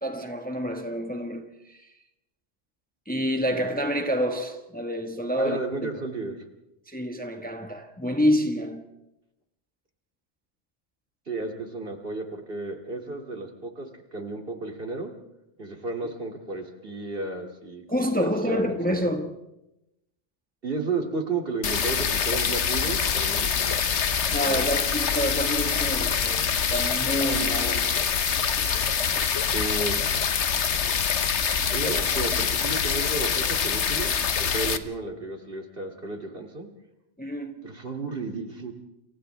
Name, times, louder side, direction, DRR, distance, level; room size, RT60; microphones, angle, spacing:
voice 1, 0.0-1.9 3.1-6.1 6.9-8.8 17.9-19.3 24.3-26.4 26.7-28.0 31.8-31.9 37.2-37.7, equal, 5° left, 1.4 m, -28 dB
voice 2, 5.4-6.4 11.3-15.1 15.6-19.0 20.6-23.8 24.2-24.7 29.5-30.0 31.7-34.1 34.4-36.7 37.6-38.7, right 3 dB, 50° right, 2.8 m, -33 dB
sound 1, 21.6-34.8, left 7 dB, 70° left, 1.3 m, -25 dB
29.5 x 28.0 x 3.4 m
omnidirectional pair, 1.2 m